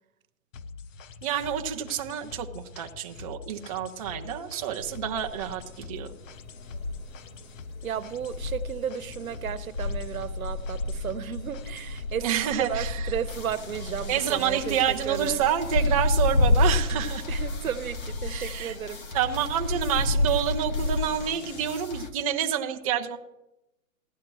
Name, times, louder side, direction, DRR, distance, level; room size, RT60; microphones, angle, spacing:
sound 1, 0.5-14.6, left 4 dB, 65° left, 0.8 m, -44 dB
voice 1, 1.2-6.1 12.2-13.1 14.1-17.2 18.3-18.8 19.1-23.2, right 9 dB, 25° right, 4 dB, 0.6 m, -28 dB
sound 2, 4.8-21.8, left 2 dB, 80° left, 2.4 m, -30 dB
voice 2, 7.8-12.3 12.6-15.5 17.3-19.0, right 8 dB, 80° right, 14 dB, 1.1 m, -33 dB
sound 3, 13.3-22.1, left 2 dB, 35° left, 1.3 m, -40 dB
15.5 x 11.0 x 3.1 m, 0.90 s
hypercardioid pair, 155°, 41 cm